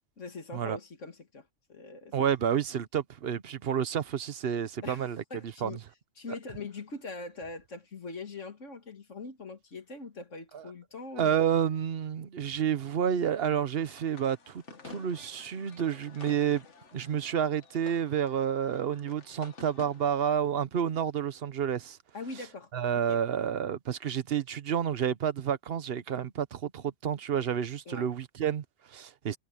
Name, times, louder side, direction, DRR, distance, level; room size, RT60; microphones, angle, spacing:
voice 1, 0.2-2.2 4.8-5.8 6.2-11.4 22.1-23.2 27.9-28.1, left 3 dB, 90° left, 2.5 m, -42 dB
voice 2, 2.1-5.2 5.6-5.8 10.5-10.6 11.2-16.6 16.9-22.0 22.7-29.4, right 8 dB, 55° right, 1.0 m, -30 dB
sound 1, 13.7-20.3, left 4 dB, 75° left, 1.9 m, -52 dB
omnidirectional pair, 1.2 m